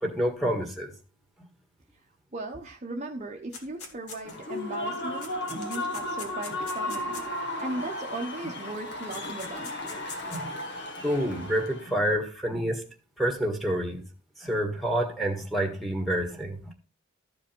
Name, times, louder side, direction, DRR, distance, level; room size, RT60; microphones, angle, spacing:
voice 1, 0.0-0.9 10.3-10.5 11.0-12.8 13.2-14.0 14.4-16.7, equal, ahead, 1.7 m, -28 dB
voice 2, 2.3-7.2 7.6-9.7, right 2 dB, 30° right, 0.9 m, -37 dB
sound 1, 3.5-4.6 4.9-7.7 8.7-8.8 9.1-10.4, left 4 dB, 80° left, 2.2 m, -43 dB
Human voice / Cheering / Applause, 4.2-11.9, left 1 dB, 50° left, 1.6 m, -35 dB
13.5 x 5.0 x 4.5 m
head